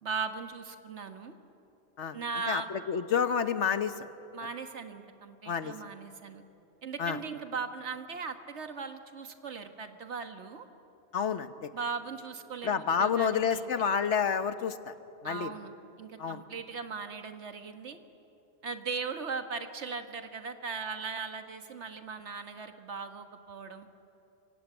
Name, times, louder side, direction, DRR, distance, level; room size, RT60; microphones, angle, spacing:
voice 1, 0.0-1.3 2.1-2.7 4.3-6.4 6.8-10.7 11.7-13.6 15.2-15.7 16.0-18.0 18.6-23.9, right 5 dB, 75° right, 7 dB, 1.7 m, -38 dB
voice 2, 2.5-4.1 5.5-5.7 7.0-7.2 11.1-11.7 12.6-14.9 15.2-15.5 16.2-16.4, left 7 dB, 80° left, 11 dB, 1.4 m, -29 dB
25.5 x 24.0 x 9.1 m, 2.9 s
omnidirectional pair, 1.2 m